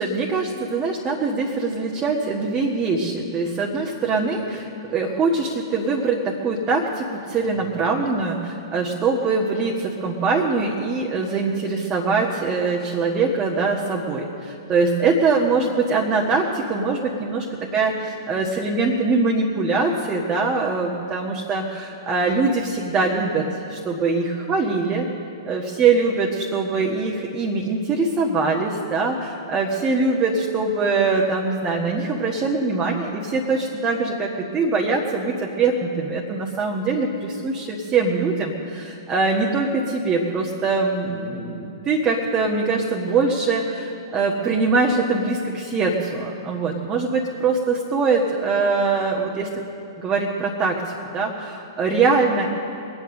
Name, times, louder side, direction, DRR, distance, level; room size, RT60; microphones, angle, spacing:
voice 1, 0.0-17.4 17.7-25.1 25.4-49.5 50.0-52.5, right 4 dB, 25° right, -2 dB, 1.6 m, -23 dB
21.5 x 9.5 x 6.6 m, 2.9 s
figure-of-eight pair, 110°, 2 cm